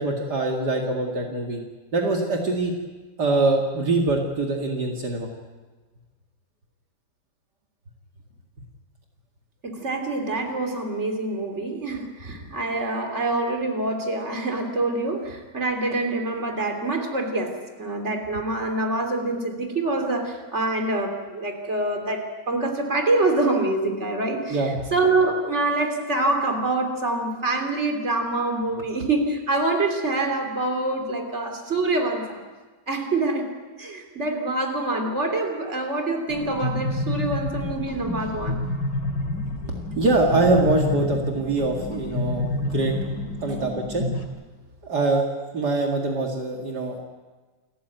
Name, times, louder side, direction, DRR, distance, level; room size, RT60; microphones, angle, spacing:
voice 1, 0.0-1.6 1.9-2.7 3.2-5.3 24.5-24.7 40.0-42.9 43.4-44.1 44.8-45.3 45.5-47.0, right 2 dB, 65° right, 0 dB, 2.8 m, -23 dB
voice 2, 9.6-32.4 32.9-33.5 33.8-38.6, right 2 dB, 40° right, 4 dB, 3.5 m, -25 dB
sound 1, 36.3-44.3, left 1 dB, 85° left, 3.3 m, -29 dB
28.5 x 14.5 x 9.2 m, 1.3 s
omnidirectional pair, 1.9 m